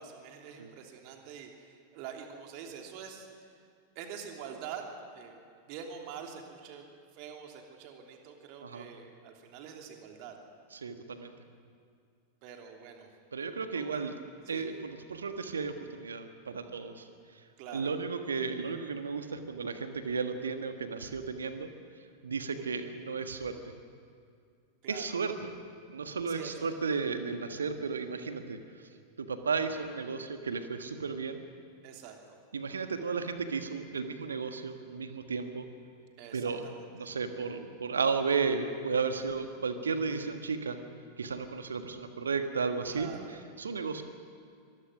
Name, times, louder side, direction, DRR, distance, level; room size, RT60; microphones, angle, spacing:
voice 1, 0.0-3.5 3.9-4.9 5.1-5.4 5.6-6.9 7.1-10.4 12.4-13.1 13.7-14.1 14.5-14.7 17.6-17.9 24.8-25.2 26.3-26.7 31.8-32.4 36.2-37.1 42.9-43.3, right 7 dB, 45° right, 2 dB, 2.9 m, -45 dB
voice 2, 10.7-11.3 13.3-14.1 14.5-17.0 17.7-21.7 22.2-23.6 24.9-25.5 25.9-28.6 29.2-31.4 32.5-35.7 36.3-36.6 36.9-40.8 41.2-43.1 43.6-44.0, right 5 dB, 70° right, 8 dB, 1.6 m, -34 dB
25.0 x 19.5 x 6.3 m, 2.3 s
figure-of-eight pair, 90°, 0 cm